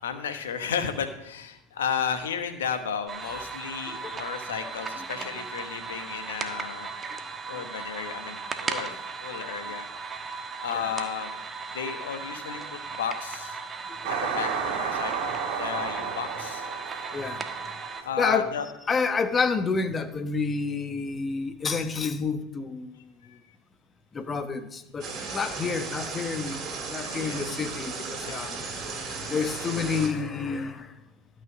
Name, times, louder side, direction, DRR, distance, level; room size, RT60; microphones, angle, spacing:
voice 1, 0.0-6.9 7.5-9.8 10.6-11.3 11.7-13.6 14.0-16.7 18.0-18.7 23.3-23.4 25.2-25.4 27.0-27.5 28.2-28.7, left 7 dB, 80° left, 8 dB, 1.2 m, -33 dB
sound 1, 3.1-18.0, right 5 dB, 30° right, 1.3 m, -37 dB
voice 2, 3.9-4.3 4.6-5.3 5.6-5.7 7.1-7.2 10.7-10.9 12.6-12.7 16.0-16.3 17.1-17.4 18.2-18.5 18.9-23.0 24.1-26.6 26.9-30.9, left 5 dB, 25° left, 10 dB, 1.1 m, -30 dB
sound 2, 14.0-18.3, right 6 dB, 65° right, 2.0 m, -32 dB
sound 3, 25.0-30.1, right 4 dB, 45° right, 3.3 m, -35 dB
12.5 x 6.4 x 6.1 m, 0.84 s
hypercardioid pair, 85°, 0 cm